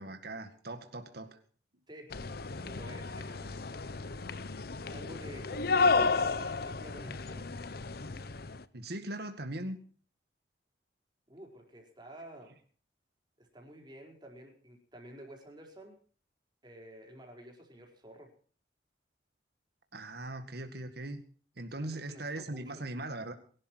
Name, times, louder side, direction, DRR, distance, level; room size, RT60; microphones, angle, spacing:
voice 1, 0.0-1.4 8.7-9.8 19.9-21.2 21.6-23.3, right 1 dB, 60° right, 7 dB, 2.0 m, -40 dB
voice 2, 1.9-2.2 2.6-4.4 4.9-7.5 11.3-12.6 13.4-16.0 16.6-18.3 21.7-22.9, right 1 dB, 25° right, 1 dB, 4.8 m, -50 dB
sound 1, 2.1-8.6, left 4 dB, 60° left, 0.9 m, -32 dB
22.5 x 12.5 x 4.6 m, 0.43 s
head